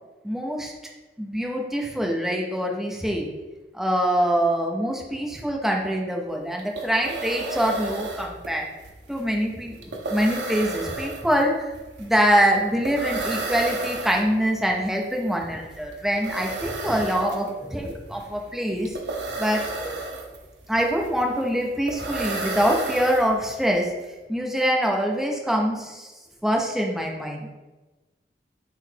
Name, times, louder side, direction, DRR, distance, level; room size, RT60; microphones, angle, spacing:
voice 1, 0.2-0.7 1.2-3.3 3.7-8.6 9.1-11.7 12.0-19.0 19.4-19.9 20.7-23.9 24.3-26.1 26.4-27.5, equal, ahead, 0 dB, 0.5 m, -24 dB
sound 1, 6.3-6.4 6.6-23.7, right 3 dB, 80° right, 0.7 m, -33 dB
3.9 x 3.0 x 4.5 m, 1.1 s
head